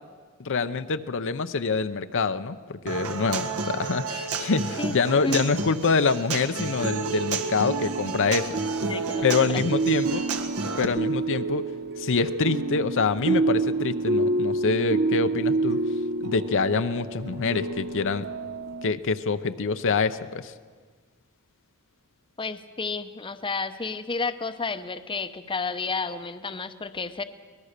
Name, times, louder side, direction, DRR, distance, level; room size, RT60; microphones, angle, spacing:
voice 1, 0.4-8.5 9.2-10.2 10.8-11.6 12.0-15.8 16.2-18.3 18.8-20.5, left 4 dB, 60° left, 10 dB, 0.7 m, -25 dB
Human voice / Acoustic guitar, 2.9-10.9, right 4 dB, 75° right, 1.8 m, -32 dB
sound 1, 6.8-18.9, right 3 dB, 50° right, 0.9 m, -28 dB
voice 2, 8.9-9.6 22.4-27.2, left 4 dB, 25° left, 10 dB, 0.8 m, -31 dB
24.0 x 19.5 x 6.7 m, 1.5 s
head